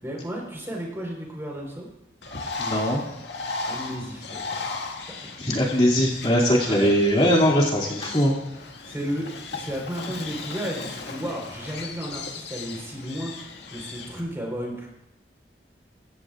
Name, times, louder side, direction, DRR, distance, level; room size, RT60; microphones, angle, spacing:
voice 1, 0.0-1.9 3.7-4.7 6.0-6.3 6.6-6.9 8.8-13.3 13.7-14.9, equal, 15° right, -1 dB, 4.2 m, -33 dB
Bird, 2.2-14.2, left 3 dB, 85° left, 1.9 m, -36 dB
voice 2, 2.6-3.0 5.4-8.4, equal, 35° left, -5 dB, 2.6 m, -21 dB
23.5 x 16.0 x 2.5 m, 0.91 s
head